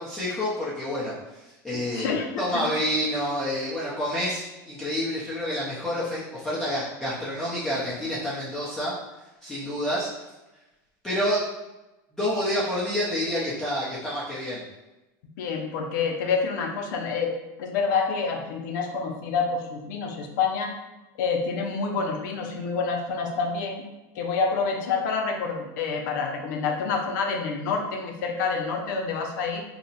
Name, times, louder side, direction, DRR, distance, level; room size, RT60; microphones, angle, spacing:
voice 1, 0.0-2.1 2.4-8.9 9.4-10.1 11.0-11.4 12.1-14.6, equal, 5° left, -10 dB, 0.6 m, -28 dB
voice 2, 1.7-2.3 2.5-2.6 15.4-20.7 21.2-23.8 24.1-29.6, left 5 dB, 80° left, 2 dB, 0.6 m, -27 dB
2.8 x 2.0 x 4.0 m, 1.0 s
supercardioid pair, 160°, 10 cm